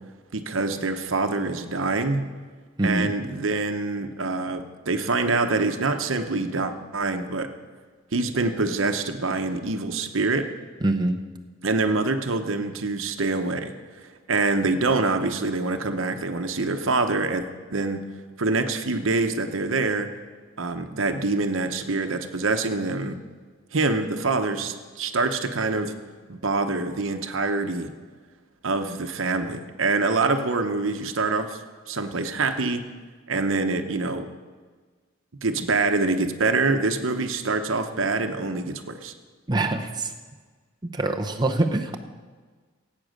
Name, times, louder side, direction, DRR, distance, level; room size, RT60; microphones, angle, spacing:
voice 1, 0.3-2.3 2.8-7.5 8.1-10.5 11.6-13.7 14.0-17.4 17.7-18.0 18.4-20.1 20.6-23.2 23.7-25.9 26.3-27.9 28.6-32.9 33.3-34.3 35.4-39.1, right 3 dB, 70° right, 7 dB, 1.0 m, -25 dB
voice 2, 2.8-3.1 10.8-11.2 39.5-40.1 40.9-42.0, right 2 dB, 20° right, 3 dB, 0.7 m, -24 dB
17.0 x 8.5 x 6.5 m, 1.4 s
head